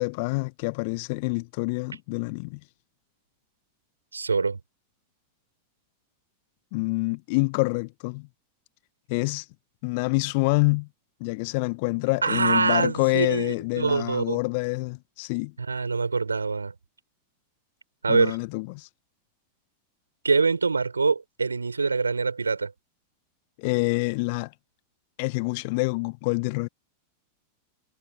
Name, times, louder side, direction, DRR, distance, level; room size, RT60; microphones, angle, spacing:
voice 1, 0.0-2.6 6.7-8.3 9.1-9.4 9.8-10.9 11.2-15.5 18.1-18.9 23.6-24.5 25.2-26.7, left 28 dB, 45° left, 1.4 m, -27 dB
voice 2, 4.1-4.6 12.2-14.4 15.7-16.7 18.0-18.4 20.2-22.7, right 4 dB, 75° right, 4.6 m, -24 dB
figure-of-eight pair, 90°, 0 cm